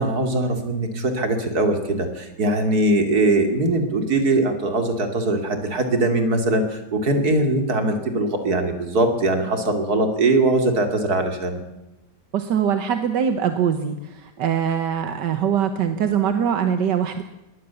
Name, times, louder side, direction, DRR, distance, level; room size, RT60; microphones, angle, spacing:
voice 1, 0.0-11.6, right 2 dB, 65° right, 6 dB, 3.3 m, -21 dB
voice 2, 12.3-17.2, right 8 dB, 85° right, 9 dB, 1.8 m, -22 dB
22.0 x 18.0 x 7.1 m, 0.92 s
omnidirectional pair, 1.8 m